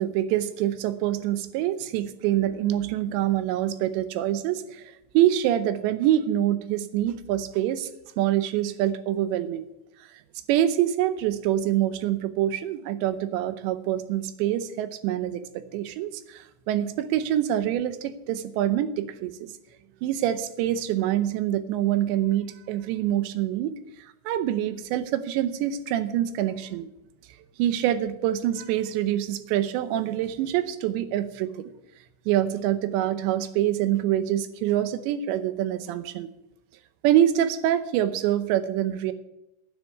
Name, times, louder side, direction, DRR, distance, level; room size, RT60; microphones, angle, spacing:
voice 1, 0.0-7.9 8.2-9.7 10.5-19.5 20.0-23.7 24.3-26.9 27.6-31.7 32.3-36.3 37.0-39.1, right 12 dB, 90° right, 13 dB, 3.1 m, -25 dB
9.6 x 8.0 x 9.6 m, 0.87 s
omnidirectional pair, 5.0 m